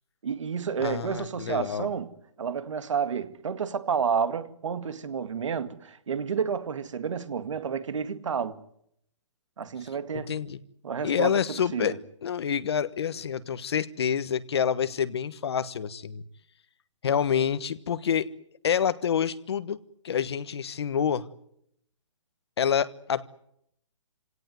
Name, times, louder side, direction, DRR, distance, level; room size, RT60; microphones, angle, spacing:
voice 1, 0.2-2.1 2.4-8.6 9.6-10.3 10.8-12.0, right 6 dB, 70° right, 2.1 m, -30 dB
voice 2, 0.8-1.9 10.1-10.6 11.0-16.2 17.0-18.3 18.6-21.3 22.6-23.3, left 8 dB, 55° left, 1.3 m, -27 dB
27.5 x 17.5 x 9.5 m
hypercardioid pair, 175°, 16 cm